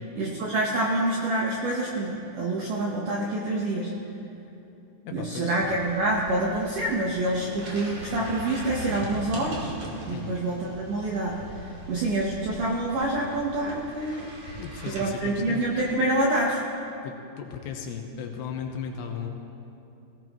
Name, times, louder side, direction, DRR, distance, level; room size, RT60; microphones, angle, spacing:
voice 1, 0.2-3.9 5.1-9.7 10.1-11.4 11.9-14.3 14.9-16.6, right 1 dB, 75° right, -3 dB, 1.9 m, -27 dB
voice 2, 5.1-5.6 10.1-10.4 14.6-15.7 17.0-19.3, left 7 dB, 75° left, 3 dB, 2.9 m, -36 dB
sound 1, 5.6-16.2, right 1 dB, 50° right, 2.8 m, -41 dB
18.0 x 17.5 x 3.0 m, 2.9 s
omnidirectional pair, 5.3 m